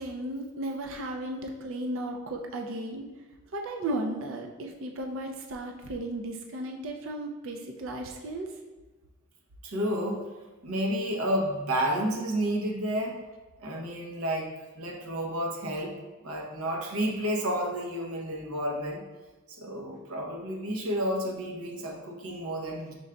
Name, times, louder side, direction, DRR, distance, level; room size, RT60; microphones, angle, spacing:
voice 1, 0.0-3.1 3.5-8.5, right 1 dB, 60° right, 3 dB, 0.4 m, -35 dB
voice 2, 9.6-10.2 10.6-13.2 13.6-16.0 16.2-19.1 19.5-22.9, equal, 80° right, 0 dB, 0.9 m, -31 dB
5.2 x 3.7 x 2.2 m, 1.2 s
head